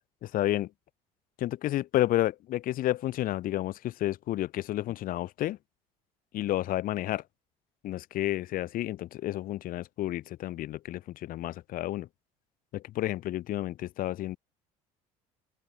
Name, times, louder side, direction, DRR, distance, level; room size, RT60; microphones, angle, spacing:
voice 1, 0.2-0.7 1.4-5.6 6.3-7.2 7.8-12.1 12.7-14.4, left 14 dB, 60° left, 5.1 m, -31 dB
open air
supercardioid pair, 100°, 16 cm